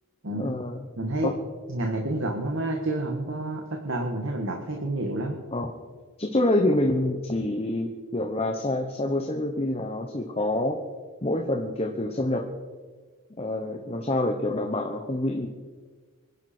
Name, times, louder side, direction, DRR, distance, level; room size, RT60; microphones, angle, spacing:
voice 1, 0.3-0.8 1.2-1.3 5.5-5.7 6.2-10.8 11.2-12.5 13.4-15.5, left 1 dB, 25° left, 4 dB, 1.0 m, -27 dB
voice 2, 1.0-1.3 1.7-5.4, right 1 dB, 60° right, 2 dB, 1.6 m, -29 dB
25.0 x 11.0 x 4.4 m, 1.4 s
head